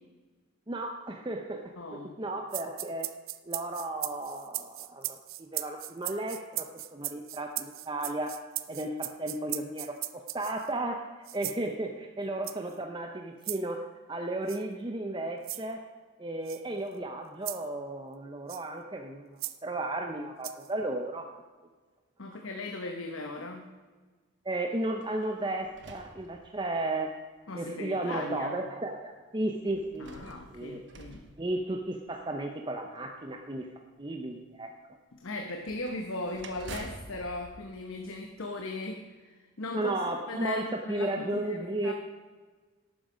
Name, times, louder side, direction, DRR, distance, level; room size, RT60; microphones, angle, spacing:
voice 1, 0.7-3.1 3.5-8.3 8.7-11.0 11.3-15.8 16.2-21.2 24.4-27.1 27.5-30.1 30.5-30.8 31.4-33.7 34.0-34.7 39.7-41.9, right 2 dB, 20° right, 3 dB, 0.6 m, -34 dB
voice 2, 1.8-2.2 22.2-23.7 27.5-28.6 30.0-31.2 35.1-39.9 40.3-41.9, left 2 dB, 70° left, 3 dB, 1.0 m, -38 dB
sound 1, 2.5-10.7 11.2-11.6 12.4-12.7 13.4-13.6 14.5-14.6 15.4-15.7 16.5-16.6 17.4-17.7 18.5-18.6 19.4-19.6 20.4-20.7, right 17 dB, 70° right, 0.5 m, -37 dB
sound 2, 24.9-27.0 27.7-27.8 29.7-32.2 35.6-38.7, right 2 dB, 55° right, 1.1 m, -48 dB
11.5 x 8.9 x 5.1 m, 1.4 s
head